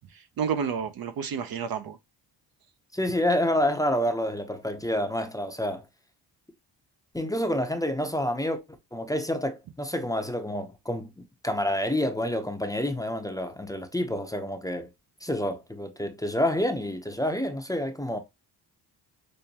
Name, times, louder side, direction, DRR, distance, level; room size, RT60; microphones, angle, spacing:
voice 1, 0.4-2.0, right 7 dB, 55° right, 0.7 m, -30 dB
voice 2, 2.9-5.8 7.1-8.6 8.9-14.9 15.2-18.2, left 1 dB, 10° left, 0.7 m, -28 dB
5.3 x 2.2 x 2.8 m
cardioid pair, 70°, 43 cm